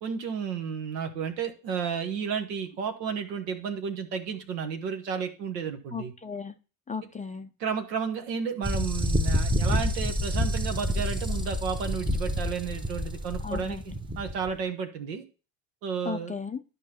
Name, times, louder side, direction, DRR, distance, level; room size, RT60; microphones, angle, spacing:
voice 1, 0.0-6.1 7.6-15.2 15.8-16.3, right 6 dB, 75° right, 6 dB, 1.2 m, -32 dB
voice 2, 5.9-6.5 6.9-7.5 13.4-13.8 16.0-16.6, left 5 dB, 15° left, 7 dB, 0.4 m, -35 dB
sound 1, 8.6-14.5, equal, 10° right, 0.9 m, -28 dB
12.0 x 5.3 x 2.9 m, 0.35 s
hypercardioid pair, 60°, 50 cm